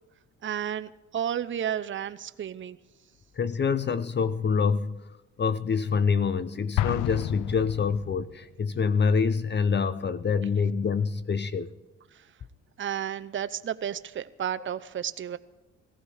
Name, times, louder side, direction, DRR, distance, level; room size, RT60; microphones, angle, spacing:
voice 1, 0.4-2.8 12.8-15.4, right 9 dB, 40° right, 11 dB, 0.7 m, -32 dB
voice 2, 3.3-5.0 5.4-11.7, left 5 dB, 35° left, 14 dB, 0.6 m, -26 dB
Explosion, 6.8-8.4, left 14 dB, 85° left, 0.5 m, -30 dB
17.5 x 14.5 x 4.9 m, 1.1 s
cardioid pair, 90°, 30 cm